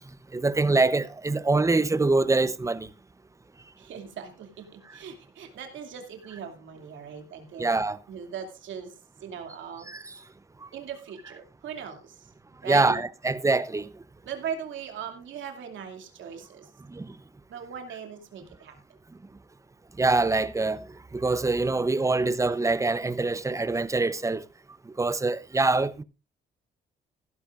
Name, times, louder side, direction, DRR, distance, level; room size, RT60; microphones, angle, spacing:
voice 1, 0.3-2.9 7.6-8.0 9.9-10.1 12.6-13.9 16.9-17.1 20.0-20.9 21.1-24.5 24.9-26.0, right 3 dB, 15° right, 0.7 m, -24 dB
voice 2, 3.8-7.7 8.1-9.9 10.2-10.3 10.7-12.3 12.6-13.0 14.2-16.7 17.5-18.7 22.1-22.2, right 7 dB, 75° right, 2.6 m, -39 dB
15.5 x 12.5 x 2.5 m
cardioid pair, 90°, 20 cm